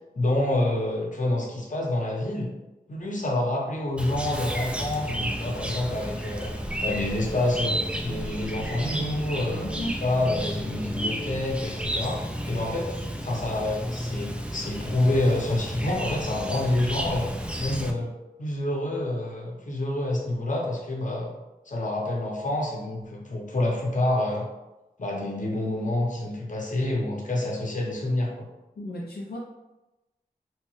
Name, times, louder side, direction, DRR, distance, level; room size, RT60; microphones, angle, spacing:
voice 1, 0.1-2.5 2.9-6.5 6.8-9.7 10.0-17.3 17.6-18.1 18.4-21.3 21.7-24.5 25.0-28.5, left 1 dB, 55° left, -2 dB, 0.8 m, -27 dB
Chirp tweet, 4.0-17.9, equal, 5° right, 0.3 m, -32 dB
voice 2, 28.8-29.4, left 1 dB, 80° left, -3 dB, 0.4 m, -34 dB
3.1 x 2.2 x 3.1 m, 1.0 s
wide cardioid pair, 55°, 16 cm